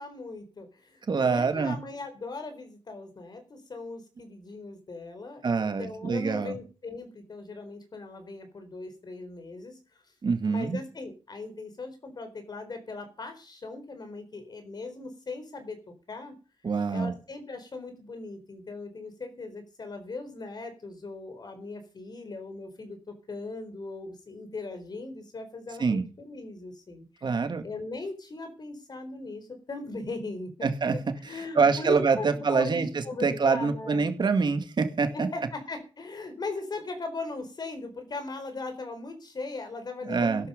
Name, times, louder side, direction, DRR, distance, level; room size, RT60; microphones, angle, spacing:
voice 1, 0.0-9.8 10.4-16.4 16.9-27.4 27.6-30.5 31.2-34.1 35.1-40.5, left 3 dB, 50° left, 8 dB, 4.3 m, -39 dB
voice 2, 1.1-1.8 5.4-6.6 10.2-10.8 16.6-17.1 25.8-26.0 27.2-27.6 30.6-31.0 31.6-32.9 33.2-35.3 40.0-40.5, right 5 dB, 55° right, 8 dB, 2.1 m, -25 dB
16.0 x 12.0 x 5.3 m, 0.35 s
wide cardioid pair, 145°, 9 cm